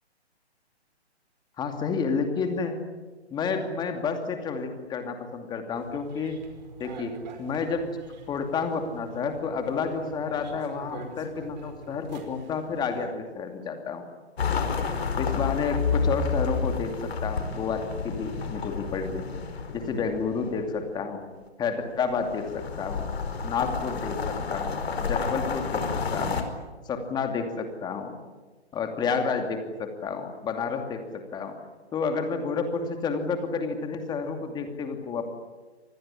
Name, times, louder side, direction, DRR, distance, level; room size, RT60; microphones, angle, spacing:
voice 1, 1.6-2.8 3.3-6.4 6.8-7.9 8.3-14.1 15.2-19.2 19.7-21.2 21.6-23.1 23.4-26.5 26.8-28.2 28.7-31.6 31.9-35.3, left 5 dB, 10° left, 6 dB, 2.6 m, -30 dB
sound 1, 5.7-13.1, right 4 dB, 40° right, 5.1 m, -46 dB
sound 2, 14.4-20.9 22.0-26.4, left 5 dB, 65° left, 4.8 m, -30 dB
26.5 x 20.0 x 9.9 m, 1.3 s
hypercardioid pair, 145°, 34 cm